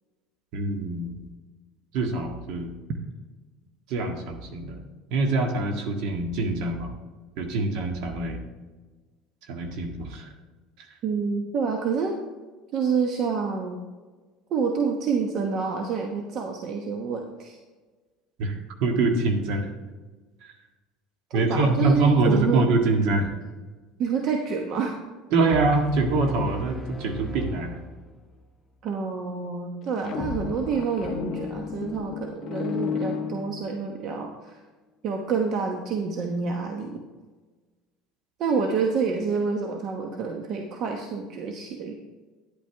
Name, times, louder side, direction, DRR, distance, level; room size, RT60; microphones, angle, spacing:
voice 1, 0.5-1.3 1.9-2.8 3.9-4.8 5.1-6.9 7.4-8.4 9.5-10.3 10.8-10.9 18.4-19.7 20.4-20.5 21.3-23.3 25.3-27.8, right 3 dB, 70° right, 4 dB, 1.7 m, -24 dB
voice 2, 11.0-12.2 12.7-13.8 14.5-17.6 21.3-22.7 24.0-24.9 28.8-34.6 35.0-37.0 38.4-41.9, right 5 dB, 50° right, 3 dB, 1.1 m, -28 dB
sound 1, 25.5-28.5, left 1 dB, 5° left, 1.0 m, -38 dB
sound 2, 29.8-34.1, left 7 dB, 45° left, 0.6 m, -33 dB
10.5 x 8.6 x 3.5 m, 1.3 s
supercardioid pair, 120°, 0 cm